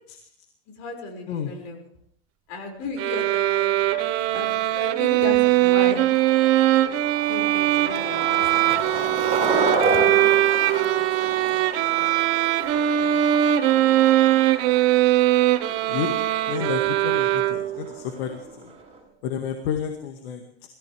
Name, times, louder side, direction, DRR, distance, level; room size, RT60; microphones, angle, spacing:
voice 1, 0.7-1.9 2.5-3.7 4.3-6.1 6.8-9.4 10.6-11.9 12.7-13.4 13.7-14.3, left 3 dB, 60° left, 4 dB, 6.2 m, -37 dB
sound 1, 3.0-17.9, right 14 dB, 50° right, 1.3 m, -21 dB
Skateboard, 3.8-19.0, right 3 dB, 20° right, 7.2 m, -32 dB
voice 2, 16.5-18.7 19.2-20.4, left 8 dB, 80° left, 4 dB, 2.1 m, -30 dB
22.5 x 15.0 x 3.5 m, 0.65 s
supercardioid pair, 110°, 31 cm